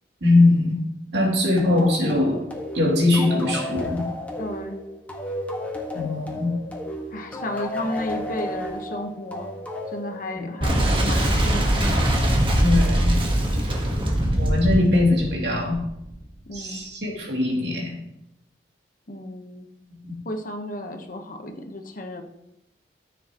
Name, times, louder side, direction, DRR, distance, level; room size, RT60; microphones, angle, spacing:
voice 1, 0.2-0.8 1.1-2.4 2.7-4.0 5.9-6.5 10.3-10.4 12.6-13.1 14.3-15.8 16.5-18.0 20.0-20.1, left 2 dB, 70° right, -2 dB, 2.8 m, -21 dB
sound 1, 1.6-10.8, left 1 dB, 10° left, 1.6 m, -33 dB
voice 2, 4.4-4.8 7.1-9.5 9.9-12.1 16.5-16.9 19.1-19.7 20.2-22.2, left 1 dB, 50° left, 4 dB, 1.2 m, -33 dB
Boom, 10.6-16.2, right 1 dB, 30° right, 1.5 m, -22 dB
14.0 x 7.4 x 3.1 m, 0.82 s
head